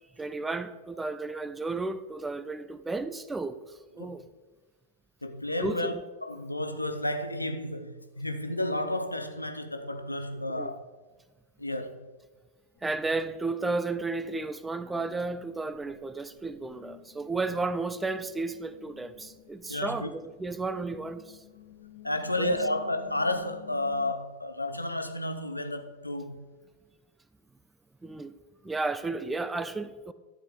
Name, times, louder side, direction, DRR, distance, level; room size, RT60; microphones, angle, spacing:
voice 1, 0.2-3.6 3.9-4.3 5.6-6.0 10.5-10.7 12.8-21.4 22.4-22.6 28.0-28.3 28.6-30.1, right 3 dB, 10° right, 0.4 m, -33 dB
voice 2, 5.2-5.9 6.2-10.9 11.6-12.1 19.7-20.1 22.0-26.5, left 1 dB, 85° left, 0.7 m, -32 dB
sound 1, 12.8-24.1, left 12 dB, 40° left, 1.3 m, -53 dB
11.5 x 8.2 x 3.7 m
figure-of-eight pair, 90°, 0 cm